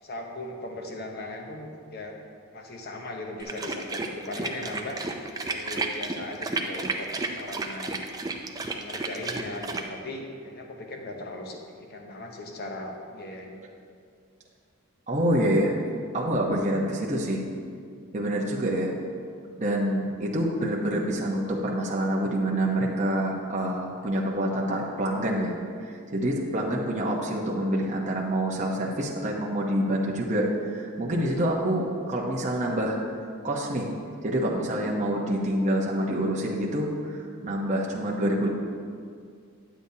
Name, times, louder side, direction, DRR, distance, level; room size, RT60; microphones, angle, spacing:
voice 1, 0.0-2.2 2.5-5.0 5.5-7.1 7.3-8.1 8.7-13.6, left 2 dB, 45° left, 2 dB, 0.9 m, -38 dB
sound 1, 3.4-9.9, right 3 dB, 15° right, 0.4 m, -32 dB
voice 2, 15.1-15.8 16.1-17.4 18.1-18.9 19.6-33.0 33.4-33.9 34.2-38.5, right 1 dB, 35° right, -3 dB, 0.9 m, -27 dB
10.0 x 8.0 x 2.8 m, 2.2 s
head